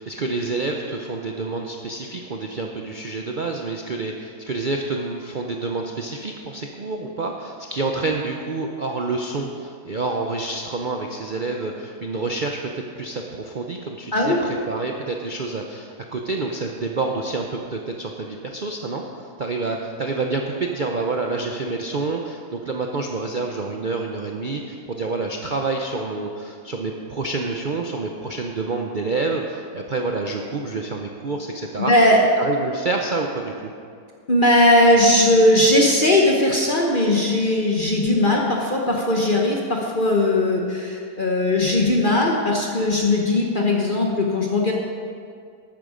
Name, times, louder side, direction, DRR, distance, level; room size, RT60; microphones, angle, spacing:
voice 1, 0.0-31.9 32.4-33.7, right 3 dB, 85° right, 1 dB, 0.4 m, -28 dB
voice 2, 31.8-32.2 34.3-44.7, left 1 dB, 35° left, -1 dB, 1.0 m, -18 dB
12.0 x 9.1 x 5.0 m, 2.2 s
omnidirectional pair, 1.9 m